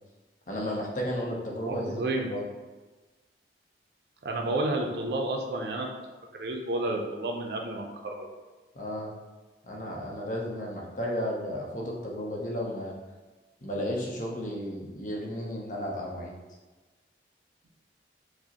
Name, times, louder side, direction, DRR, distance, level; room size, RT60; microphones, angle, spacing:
voice 1, 0.5-2.0 2.3-2.5 8.7-9.1 9.6-12.9 13.6-16.3, equal, 45° left, -2 dB, 0.7 m, -33 dB
voice 2, 1.7-2.3 4.2-5.9 6.3-8.3, right 2 dB, 65° right, 2 dB, 0.4 m, -31 dB
4.8 x 2.1 x 2.8 m, 1.2 s
head